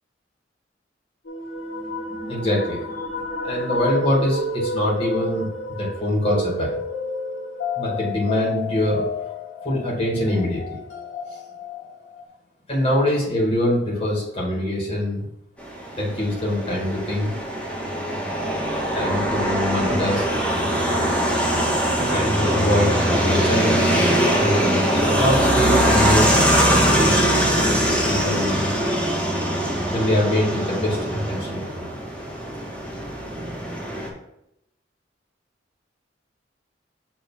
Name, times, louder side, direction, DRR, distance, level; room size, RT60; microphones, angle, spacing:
sound 1, 1.3-12.2, left 2 dB, 85° left, 1.4 m, -30 dB
voice 1, 2.3-2.8 3.4-6.8 7.8-9.1 9.6-10.8 12.7-15.3 16.0-17.3 18.9-20.2 22.1-23.9 24.9-27.5 28.1-28.7 29.9-31.9, left 1 dB, 30° left, -5 dB, 2.4 m, -24 dB
sound 2, 15.7-34.1, equal, 5° left, 2.1 m, -22 dB
7.1 x 3.7 x 5.7 m, 0.84 s
head